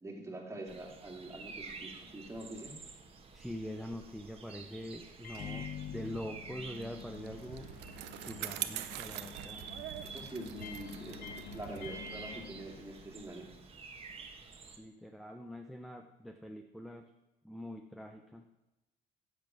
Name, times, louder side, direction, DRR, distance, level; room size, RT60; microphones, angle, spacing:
voice 1, 0.0-2.7 10.0-13.5, right 1 dB, 15° right, 0 dB, 2.4 m, -45 dB
sound 1, 0.7-14.8, right 4 dB, 35° right, 1.4 m, -51 dB
voice 2, 3.3-7.7 8.2-9.6 14.8-17.0 17.4-18.5, equal, ahead, 5 dB, 0.7 m, -44 dB
Microwave oven, 5.2-13.4, left 5 dB, 70° left, 1.4 m, -47 dB
Bicycle, 6.8-13.5, right 13 dB, 85° right, 0.7 m, -44 dB
10.0 x 7.1 x 6.2 m, 1.0 s
cardioid pair, 110°, 17 cm